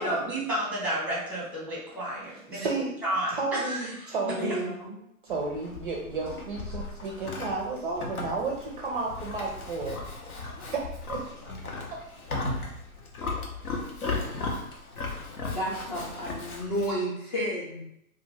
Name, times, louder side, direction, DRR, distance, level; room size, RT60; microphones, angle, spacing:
voice 1, 0.0-2.7 3.0-4.1, right 1 dB, 5° right, -6 dB, 0.8 m, -31 dB
voice 2, 2.5-2.9 3.3-4.7 5.2-10.0 10.7-11.2 11.9-12.0 14.1-14.3, right 3 dB, 40° right, -1 dB, 0.4 m, -32 dB
voice 3, 4.3-5.0 15.5-17.8, equal, 30° left, -4 dB, 0.4 m, -31 dB
Livestock farm animals working animals, 5.3-17.0, left 3 dB, 80° left, 0.8 m, -36 dB
2.4 x 2.4 x 3.0 m, 0.77 s
hypercardioid pair, 130°, 43 cm